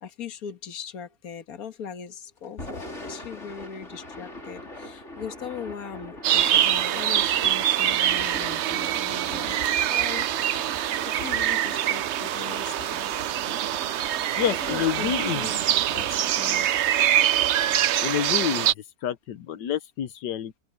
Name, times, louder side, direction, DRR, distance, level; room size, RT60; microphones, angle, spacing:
voice 1, 0.0-9.6 9.9-13.1 14.5-15.6 15.9-16.7, left 7 dB, 60° left, 2.0 m, -40 dB
Thunder / Rain, 2.4-18.7, left 1 dB, 40° left, 4.9 m, -43 dB
sound 1, 6.2-18.7, right 11 dB, 70° right, 0.6 m, -24 dB
voice 2, 14.3-15.4 18.0-18.7 19.0-20.5, left 10 dB, 85° left, 1.5 m, -28 dB
open air
omnidirectional pair, 1.8 m